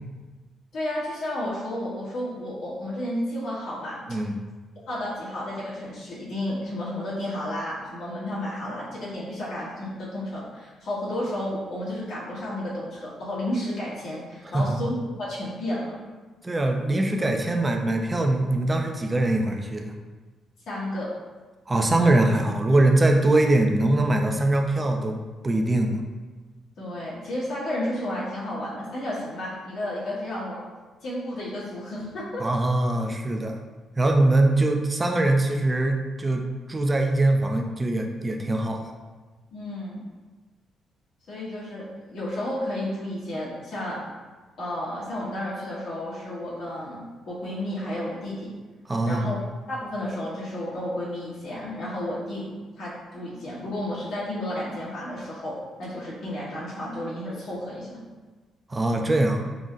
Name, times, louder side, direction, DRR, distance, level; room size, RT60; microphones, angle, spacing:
voice 1, 0.7-4.0 4.9-15.9 20.7-21.1 26.8-30.6 31.0-32.4 39.5-40.0 41.3-44.0 44.6-48.5 49.1-49.4 49.7-52.5 52.8-57.9, left 1 dB, 70° left, -8 dB, 1.3 m, -32 dB
voice 2, 4.1-4.5 14.4-14.8 16.4-19.9 21.7-25.2 25.4-26.0 32.4-33.6 34.0-38.9 48.9-49.3 58.7-59.5, right 2 dB, 25° right, 3 dB, 0.4 m, -22 dB
3.8 x 2.1 x 3.7 m, 1.3 s
cardioid pair, 90°, 0 cm